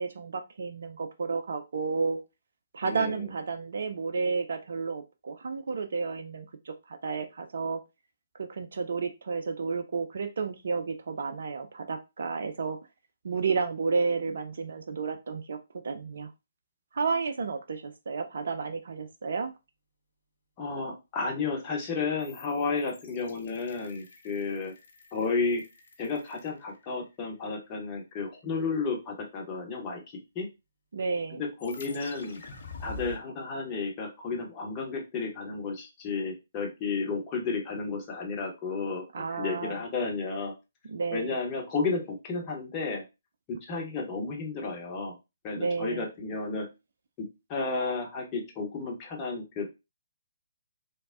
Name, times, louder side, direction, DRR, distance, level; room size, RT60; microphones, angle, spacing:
voice 1, 0.0-2.2 2.7-7.8 8.3-12.8 13.2-15.6 15.8-16.3 16.9-19.5 30.9-31.4 39.1-39.8 40.8-41.3 45.5-46.1, right 4 dB, 55° right, 6 dB, 0.3 m, -31 dB
voice 2, 2.8-3.2 20.6-24.7 25.1-25.6 26.0-30.0 30.3-30.5 31.3-32.4 32.8-40.5 41.1-43.0 43.6-45.1 45.4-46.7 47.2-49.7, left 4 dB, 25° left, -1 dB, 0.8 m, -32 dB
sound 1, 22.2-27.2 31.6-33.2, left 2 dB, 50° left, 0.7 m, -47 dB
3.1 x 2.0 x 2.5 m, 0.25 s
figure-of-eight pair, 135°, 0 cm